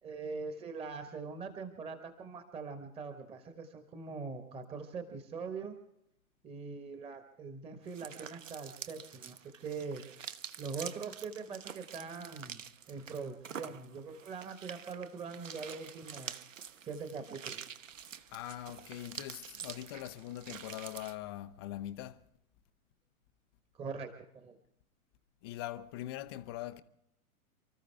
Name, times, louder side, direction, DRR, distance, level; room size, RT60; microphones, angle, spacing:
voice 1, 0.0-5.8 6.4-10.1 10.6-12.6 12.9-16.3 16.8-17.6 23.7-24.6, right 5 dB, 15° right, 1.4 m, -42 dB
sound 1, 7.9-21.2, right 8 dB, 60° right, 1.0 m, -47 dB
voice 2, 18.3-22.2 25.4-26.8, left 14 dB, 20° left, 0.6 m, -42 dB
29.0 x 14.0 x 3.5 m
figure-of-eight pair, 115°, 43 cm